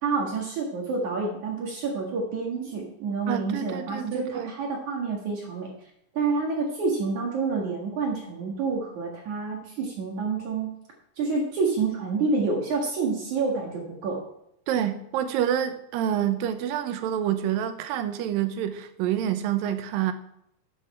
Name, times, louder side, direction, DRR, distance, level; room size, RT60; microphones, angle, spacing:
voice 1, 0.0-5.7 6.1-10.8 11.2-14.2, right 4 dB, 55° right, -1 dB, 2.8 m, -28 dB
voice 2, 3.3-4.5 14.7-20.1, right 10 dB, 75° right, 9 dB, 2.3 m, -27 dB
12.5 x 8.6 x 4.3 m, 0.76 s
omnidirectional pair, 4.7 m